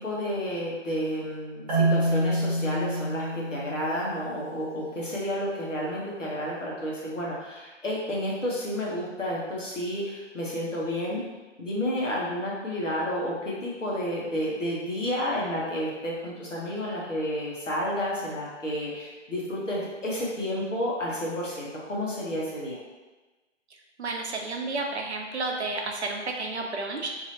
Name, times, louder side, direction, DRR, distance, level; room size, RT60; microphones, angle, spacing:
voice 1, 0.0-11.2 11.6-22.8, equal, 80° left, -5 dB, 1.2 m, -31 dB
Marimba xylophone, 1.7-4.7, right 1 dB, 30° right, 1.0 m, -27 dB
voice 2, 24.0-27.1, right 3 dB, 60° right, 1 dB, 0.6 m, -31 dB
2.9 x 2.8 x 2.8 m, 1.2 s
figure-of-eight pair, 135°, 37 cm